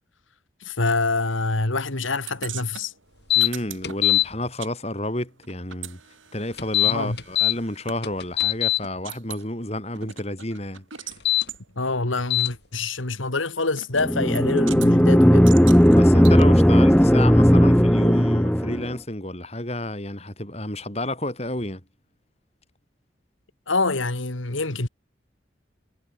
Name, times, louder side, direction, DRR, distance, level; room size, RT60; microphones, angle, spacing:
voice 1, 0.6-2.9 6.8-7.2 11.8-15.6 23.7-24.9, left 3 dB, 90° left, 2.4 m, -26 dB
sound 1, 2.3-4.7 5.0-8.0 8.4-8.5 8.8-9.5 9.9-11.2 11.5-11.6 12.4-12.5 13.8-14.1 14.3-14.9 15.5-16.4, right 10 dB, 85° right, 6.3 m, -40 dB
sound 2, 3.3-3.5 3.8-4.3 6.6-7.5 8.0-8.8 11.1-11.4 12.3-12.5, left 15 dB, 60° left, 2.8 m, -20 dB
voice 2, 3.4-6.0 6.3-11.2 15.9-21.8, left 1 dB, 35° left, 4.9 m, -30 dB
sound 3, 14.0-18.9, equal, 5° left, 1.2 m, -16 dB
head